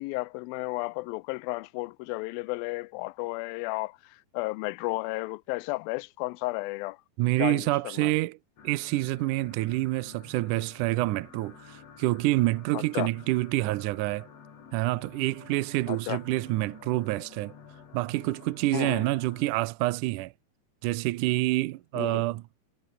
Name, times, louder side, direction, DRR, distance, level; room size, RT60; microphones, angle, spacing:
voice 1, 0.0-7.0 7.4-8.1 12.7-13.1 15.9-16.2 18.7-19.0 21.9-22.2, left 23 dB, 90° left, 2.4 m, -33 dB
voice 2, 7.2-8.4 8.6-14.3 14.7-17.5 17.9-20.3 20.8-22.4, right 18 dB, 80° right, 2.0 m, -27 dB
sound 1, 8.6-19.5, left 7 dB, 50° left, 3.5 m, -51 dB
omnidirectional pair, 4.1 m